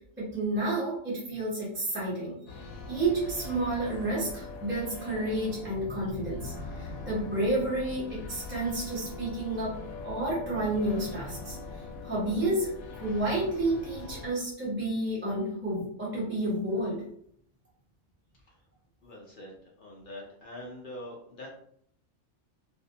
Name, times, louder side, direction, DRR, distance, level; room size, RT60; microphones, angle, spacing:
voice 1, 0.2-11.6 12.0-17.0, right 1 dB, 10° right, -7 dB, 0.6 m, -31 dB
sound 1, 2.5-14.3, left 3 dB, 85° left, 1.0 m, -41 dB
voice 2, 19.0-21.5, left 1 dB, 60° left, -2 dB, 0.5 m, -44 dB
2.5 x 2.1 x 2.7 m, 0.66 s
omnidirectional pair, 1.4 m